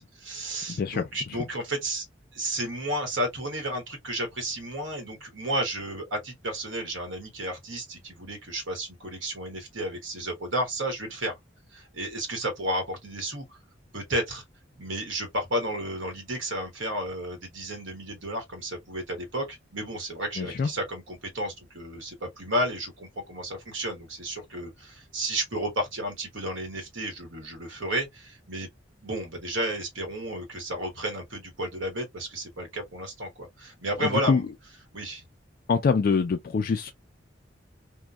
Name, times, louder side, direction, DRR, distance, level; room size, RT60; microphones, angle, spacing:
voice 1, 0.0-2.0 2.3-11.4 11.7-13.4 13.9-14.4 14.8-28.7 29.0-34.5 34.9-35.2, right 1 dB, 75° right, 1.2 m, -32 dB
voice 2, 0.8-1.1 20.4-20.7 34.3-34.4 35.7-36.9, left 5 dB, 50° left, 0.3 m, -24 dB
2.8 x 2.1 x 2.3 m
head